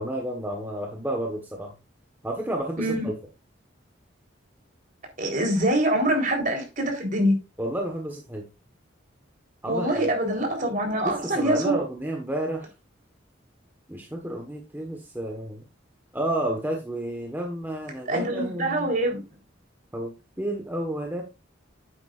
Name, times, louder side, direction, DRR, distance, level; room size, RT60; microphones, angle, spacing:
voice 1, 0.0-1.7 2.2-3.1 7.6-8.4 9.6-10.0 11.0-12.7 13.9-15.6 16.1-18.9 19.9-21.2, right 1 dB, 10° right, 1.4 m, -31 dB
voice 2, 2.8-3.1 5.2-7.3 9.7-11.7 18.1-19.2, right 1 dB, 45° right, 3.9 m, -24 dB
11.0 x 8.8 x 2.5 m
head